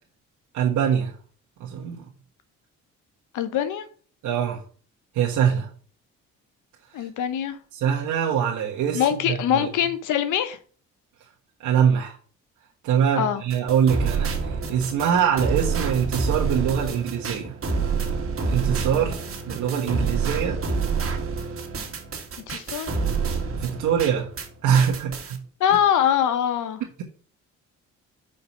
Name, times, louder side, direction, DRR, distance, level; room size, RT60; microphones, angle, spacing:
voice 1, 0.5-1.1 1.6-2.0 4.2-4.6 5.1-5.7 7.0-7.1 7.7-9.7 11.6-12.2 12.8-17.5 18.5-20.6 23.6-24.3 24.6-25.4, right 8 dB, 80° right, -2 dB, 1.4 m, -23 dB
voice 2, 3.3-3.8 6.9-7.6 8.9-10.6 13.2-13.4 22.5-22.9 25.6-26.8, left 9 dB, 80° left, 11 dB, 1.0 m, -23 dB
sound 1, 13.5-24.5 24.7-25.4, right 4 dB, 45° right, 1.8 m, -28 dB
5.5 x 5.1 x 6.0 m, 0.42 s
cardioid pair, 90°, 30 cm